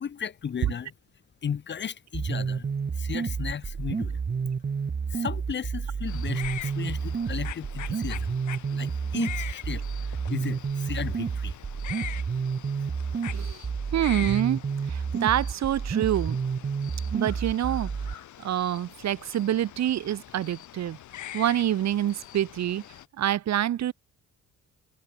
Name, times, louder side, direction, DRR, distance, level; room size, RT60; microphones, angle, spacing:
voice 1, 0.0-0.9 1.4-2.7 2.9-4.2 5.1-8.3 8.7-11.5, left 7 dB, 35° left, 0.9 m, -35 dB
sound 1, 2.1-18.1, right 5 dB, 30° right, 1.5 m, -30 dB
sound 2, 6.1-23.1, left 12 dB, 75° left, 3.1 m, -43 dB
voice 2, 13.3-13.6 13.9-14.6 14.9-16.4 17.1-21.0 21.3-22.8 23.2-23.9, right 11 dB, 60° right, 1.2 m, -27 dB
cardioid pair, 90°, 30 cm